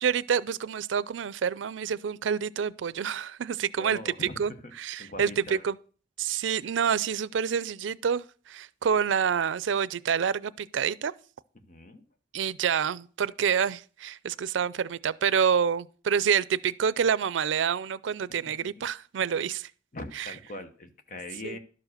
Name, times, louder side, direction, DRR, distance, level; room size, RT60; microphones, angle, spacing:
voice 1, 0.0-4.5 4.8-5.8 6.2-11.1 12.3-19.7 20.2-20.3 21.4-21.6, right 7 dB, 90° right, 0.4 m, -27 dB
voice 2, 3.8-4.4 5.0-5.7 11.5-12.0 19.9-21.6, left 2 dB, 45° left, 1.0 m, -41 dB
12.0 x 4.9 x 6.5 m
head